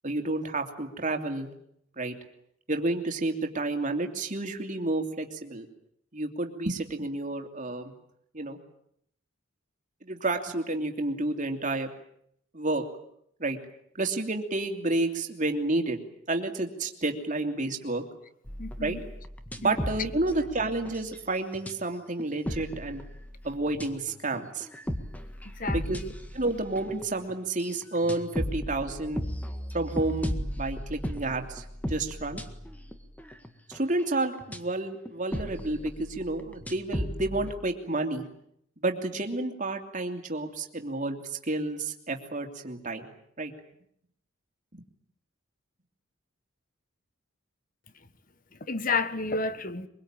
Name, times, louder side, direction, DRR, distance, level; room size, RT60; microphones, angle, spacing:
voice 1, 0.0-1.5 2.0-2.2 2.7-5.7 6.1-7.9 8.3-8.6 10.0-11.9 12.5-12.8 13.4-13.6 13.9-16.0 16.3-18.0 18.8-19.0 19.6-23.0 23.4-24.7 25.7-26.0 26.3-29.2 29.7-32.4 33.7-38.2 38.8-43.1 43.4-43.5 44.7-44.8, right 2 dB, 35° right, 2.9 m, -30 dB
sound 1, 18.5-21.7 22.2-34.6 35.0-37.6, equal, 5° left, 1.8 m, -36 dB
voice 2, 18.6-19.0 19.6-19.8 25.5-26.1 48.7-49.9, left 3 dB, 40° left, 1.4 m, -31 dB
24.0 x 23.0 x 9.0 m
head